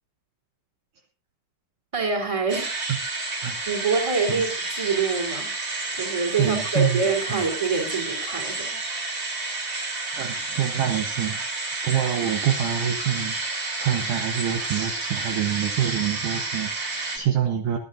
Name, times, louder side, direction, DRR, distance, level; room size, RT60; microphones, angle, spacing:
voice 1, 1.9-2.7 3.6-5.5 5.9-8.8, right 4 dB, 10° right, 2 dB, 2.7 m, -26 dB
sound 1, 2.5-17.2, right 3 dB, 25° right, 3.6 m, -30 dB
voice 2, 6.4-7.0 7.3-7.4 10.2-11.5 11.8-17.8, right 10 dB, 80° right, 4 dB, 1.8 m, -26 dB
21.5 x 11.5 x 2.7 m, 0.32 s
omnidirectional pair, 5.6 m